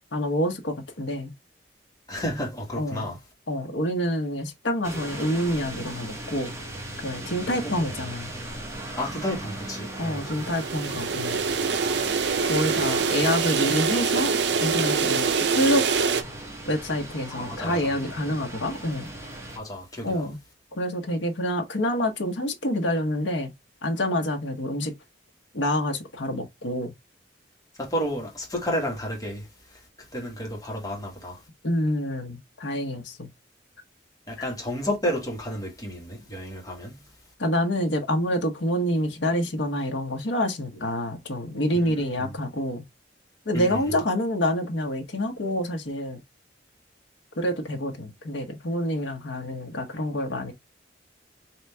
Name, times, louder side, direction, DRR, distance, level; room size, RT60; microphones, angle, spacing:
voice 1, 0.1-1.3 2.7-3.1 3.5-6.5 7.0-8.3 10.0-11.4 12.5-14.3 14.6-15.8 16.7-19.1 20.0-20.4 20.7-23.5 23.8-24.9 25.5-26.9 31.6-33.3 34.4-34.5 37.4-42.8 43.5-46.2 47.4-50.5, equal, 85° left, 1.0 m, -27 dB
voice 2, 2.1-3.2 7.5-7.9 9.0-10.4 17.3-17.8 19.6-20.3 27.8-29.5 30.1-31.4 34.3-37.0 41.7-42.3 43.5-43.8, equal, 20° left, 1.8 m, -31 dB
sound 1, 4.8-19.6, right 1 dB, 15° right, 1.1 m, -38 dB
sound 2, 10.3-16.2, right 5 dB, 70° right, 0.6 m, -25 dB
3.9 x 3.0 x 3.3 m
head